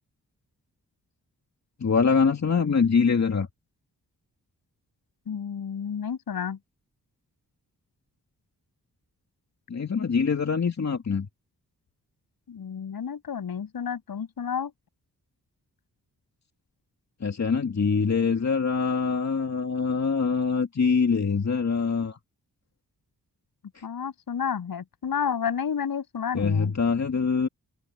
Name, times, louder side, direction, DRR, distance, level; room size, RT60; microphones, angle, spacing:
voice 1, 1.8-3.5 9.7-11.3 17.2-22.2 23.7-23.8 26.3-27.5, left 5 dB, 50° left, 2.4 m, -24 dB
voice 2, 5.3-6.6 12.5-14.7 23.8-26.7, left 7 dB, 85° left, 7.5 m, -31 dB
cardioid pair, 70°, 35 cm